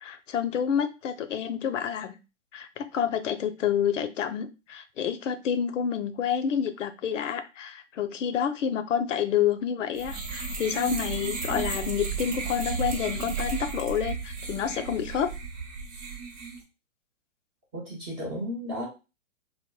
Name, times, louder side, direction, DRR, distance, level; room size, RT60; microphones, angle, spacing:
voice 1, 0.0-2.1 2.5-15.3, left 8 dB, 75° left, 11 dB, 0.5 m, -28 dB
sound 1, 9.9-16.6, right 5 dB, 75° right, 1.0 m, -34 dB
voice 2, 17.7-18.9, equal, 10° right, -3 dB, 0.4 m, -34 dB
3.4 x 2.1 x 2.2 m, 0.29 s
hypercardioid pair, 130°, 38 cm